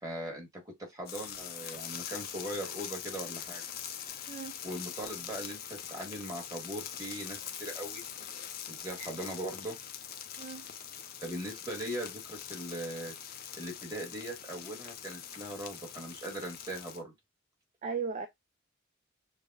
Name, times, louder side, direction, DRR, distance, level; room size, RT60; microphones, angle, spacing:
voice 1, 0.0-3.7 4.6-8.0 8.7-9.8 11.2-13.1 13.6-17.1, right 1 dB, 20° right, 1.5 m, -40 dB
sound 1, 1.1-17.0, left 9 dB, 50° left, 0.5 m, -43 dB
voice 2, 4.3-4.6 10.4-10.7 17.8-18.3, right 5 dB, 40° right, 0.4 m, -36 dB
6.5 x 2.2 x 2.4 m
head